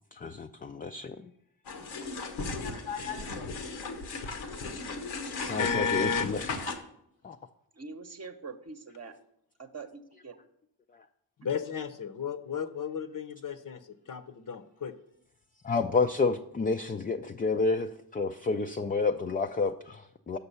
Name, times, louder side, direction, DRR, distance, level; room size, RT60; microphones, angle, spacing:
voice 1, 0.1-1.3 3.3-3.4 5.4-6.5 7.2-7.4 10.9-11.1 15.6-20.4, left 4 dB, 20° left, 6 dB, 0.4 m, -30 dB
sound 1, 1.6-6.8, left 4 dB, 85° left, 1.1 m, -36 dB
voice 2, 5.6-6.3 11.4-14.9, left 6 dB, 45° left, 10 dB, 0.8 m, -33 dB
voice 3, 7.7-9.2 9.6-10.4, right 4 dB, 35° right, 7 dB, 0.9 m, -44 dB
6.8 x 6.0 x 5.5 m, 0.75 s
supercardioid pair, 50°, 45 cm